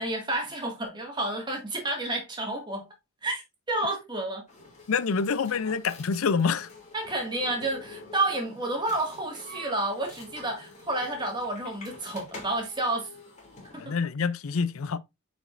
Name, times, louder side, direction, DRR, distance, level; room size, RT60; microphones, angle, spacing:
voice 1, 0.0-2.9 3.2-3.4 3.7-4.4 6.9-13.1 13.8-14.0, right 2 dB, 20° right, 2.0 m, -30 dB
sound 1, 4.5-13.9, left 2 dB, 35° left, 2.7 m, -47 dB
voice 2, 4.9-6.7 13.8-15.0, left 5 dB, 85° left, 0.5 m, -26 dB
8.9 x 5.2 x 2.6 m
head